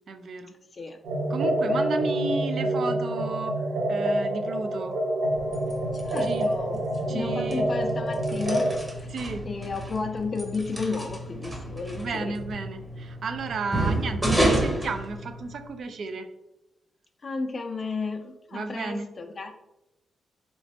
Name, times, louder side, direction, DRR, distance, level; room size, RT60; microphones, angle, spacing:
voice 1, 0.1-0.5 1.3-4.9 6.2-6.5 7.1-7.7 9.1-9.5 12.0-16.3 18.5-19.1, right 4 dB, 65° right, 8 dB, 0.4 m, -33 dB
sound 1, 1.0-8.7, right 1 dB, 85° right, 0.7 m, -27 dB
sound 2, 5.3-15.8, right 1 dB, 15° right, 0.8 m, -31 dB
voice 2, 5.9-6.8 7.1-9.1 9.4-12.3 17.2-19.5, left 4 dB, 45° left, 5 dB, 0.3 m, -33 dB
3.1 x 3.0 x 2.8 m, 0.94 s
cardioid pair, 80°, 0 cm